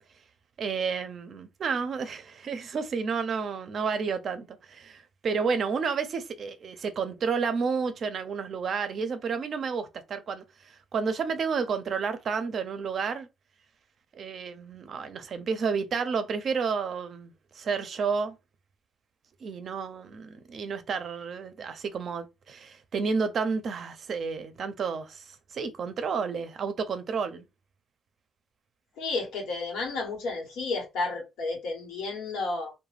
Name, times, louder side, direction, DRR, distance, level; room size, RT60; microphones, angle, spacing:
voice 1, 0.6-13.3 14.1-18.3 19.4-27.4, right 5 dB, 55° right, 0.5 m, -31 dB
voice 2, 29.0-32.7, left 3 dB, 90° left, 1.0 m, -32 dB
2.4 x 2.1 x 3.2 m
cardioid pair, 90°, 0 cm